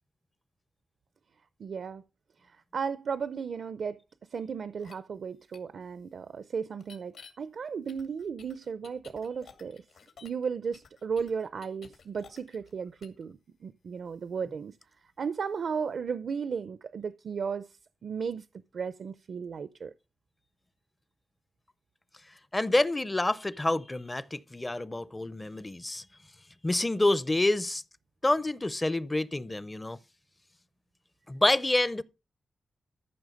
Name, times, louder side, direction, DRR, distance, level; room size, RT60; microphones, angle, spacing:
voice 1, 1.6-2.0 2.4-4.0 4.3-9.8 10.2-14.7 15.2-17.7 18.0-18.5 18.7-19.9, right 6 dB, 60° right, 0.5 m, -35 dB
sound 1, 4.8-4.9 5.5-5.6 6.8-7.3 7.9-10.4 10.7-12.7 13.0-13.2, left 6 dB, 85° left, 2.4 m, -52 dB
voice 2, 22.5-26.0 26.6-27.8 28.2-30.0 31.3-32.0, left 2 dB, 15° left, 0.5 m, -27 dB
14.0 x 6.2 x 5.2 m
wide cardioid pair, 170°, 0 cm